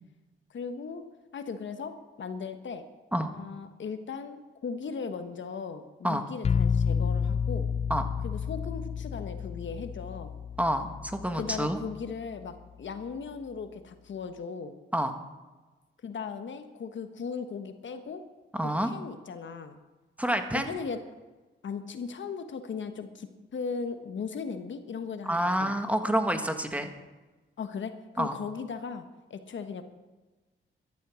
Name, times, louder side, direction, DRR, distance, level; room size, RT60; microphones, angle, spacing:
voice 1, 0.5-1.1 1.3-2.8 3.3-7.7 8.2-10.4 11.3-14.7 16.0-18.2 18.8-19.8 20.6-21.0 21.6-25.8 27.6-29.0 29.3-29.8, left 5 dB, 65° left, 8 dB, 1.3 m, -37 dB
sound 1, 6.4-12.2, left 6 dB, 30° left, 0.4 m, -30 dB
voice 2, 10.6-11.8 14.9-15.1 18.5-18.9 20.2-20.7 25.2-26.9 28.2-28.3, right 1 dB, 5° right, 6 dB, 1.7 m, -28 dB
13.5 x 12.0 x 6.3 m, 1.2 s
cardioid pair, 90°, 21 cm